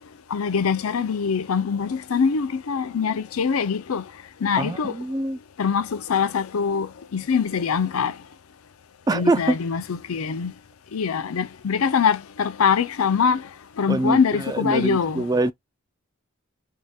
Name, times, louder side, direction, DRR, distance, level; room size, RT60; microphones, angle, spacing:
voice 1, 0.3-4.0 4.4-4.9 5.6-8.1 9.1-10.5 10.9-13.4 13.8-15.2, left 6 dB, 90° left, 0.5 m, -23 dB
voice 2, 4.6-5.4 9.1-9.6 13.9-15.5, right 2 dB, 20° right, 0.3 m, -24 dB
4.7 x 2.8 x 2.3 m
head